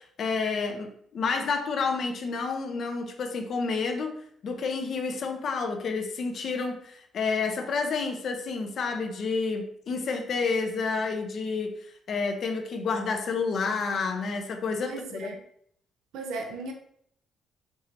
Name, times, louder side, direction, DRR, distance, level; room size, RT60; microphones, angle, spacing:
voice 1, 0.0-4.2 4.4-11.7 12.1-15.3, left 4 dB, 60° left, 4 dB, 0.6 m, -29 dB
voice 2, 14.8-15.4 16.1-16.7, right 3 dB, 85° right, 3 dB, 0.5 m, -36 dB
4.7 x 2.8 x 2.6 m, 0.66 s
cardioid pair, 90°, 0 cm